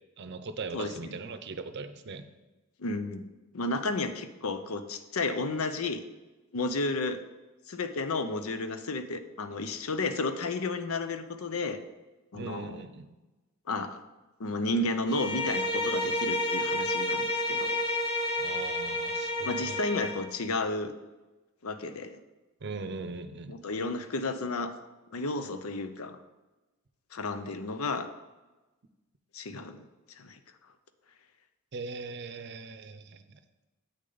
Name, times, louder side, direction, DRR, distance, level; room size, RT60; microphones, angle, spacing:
voice 1, 0.2-2.3 12.3-13.1 18.4-19.8 22.6-23.6 31.7-33.4, right 4 dB, 55° right, 10 dB, 0.6 m, -40 dB
voice 2, 2.8-3.2 3.5-6.0 6.5-7.2 7.7-11.8 12.3-12.8 13.7-14.0 14.4-17.8 19.4-20.9 21.6-22.2 23.5-24.8 25.1-26.2 27.1-28.1 29.3-29.8 30.2-30.4, left 3 dB, 90° left, 9 dB, 0.6 m, -32 dB
Bowed string instrument, 15.0-20.2, left 1 dB, 50° left, 1.3 m, -30 dB
8.0 x 6.6 x 4.0 m, 1.1 s
head